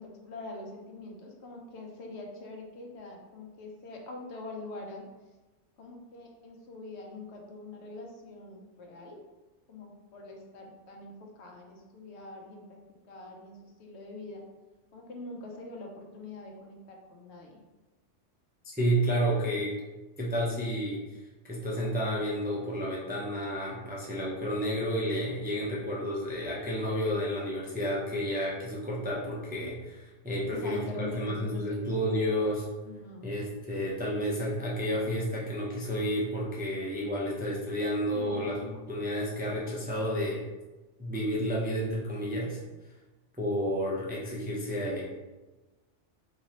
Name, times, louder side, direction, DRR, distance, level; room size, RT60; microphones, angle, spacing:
voice 1, 0.0-5.0 5.8-9.2 9.7-12.8 13.0-14.4 14.9-17.6 30.4-31.8 32.8-33.3 38.1-38.7, left 2 dB, 70° left, 1 dB, 0.9 m, -44 dB
voice 2, 18.7-19.7 20.2-21.2 21.5-32.6 33.2-40.4 41.0-42.6 43.4-45.0, equal, 15° right, -5 dB, 0.4 m, -31 dB
3.8 x 3.0 x 2.8 m, 1.1 s
omnidirectional pair, 1.2 m